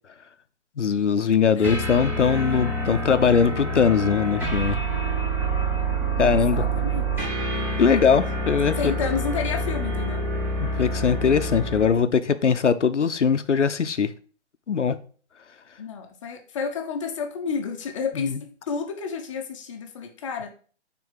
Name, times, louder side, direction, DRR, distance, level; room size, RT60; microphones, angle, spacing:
voice 1, 0.8-4.8 6.2-6.6 7.8-8.9 10.6-14.1 14.7-15.0 18.1-18.4, left 6 dB, 80° left, 11 dB, 0.8 m, -21 dB
sound 1, 1.6-12.0, right 2 dB, 5° right, 0.8 m, -27 dB
voice 2, 6.2-7.3 7.5-8.2 8.8-10.2 15.8-20.6, left 6 dB, 25° left, 4 dB, 0.8 m, -31 dB
6.0 x 4.2 x 5.7 m, 0.42 s
figure-of-eight pair, 140°, 35 cm